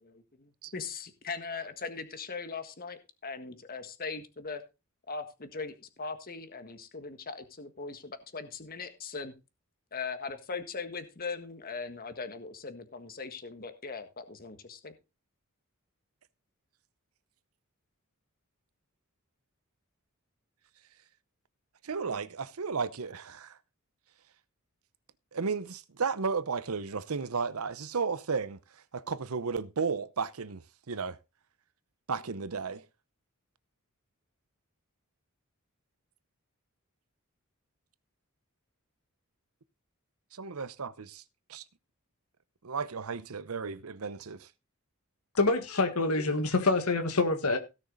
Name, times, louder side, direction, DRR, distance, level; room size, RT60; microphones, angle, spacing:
voice 1, 0.0-4.6 5.1-9.3 9.9-14.9, left 4 dB, 45° left, 1.6 m, -40 dB
voice 2, 21.8-23.6 25.3-28.6 28.9-30.6 30.9-31.2 32.1-32.8 40.3-41.2 41.5-41.6 42.6-44.5, right 5 dB, 80° right, 0.8 m, -33 dB
voice 3, 45.3-47.6, left 3 dB, 85° left, 1.6 m, -26 dB
17.0 x 6.4 x 4.0 m
head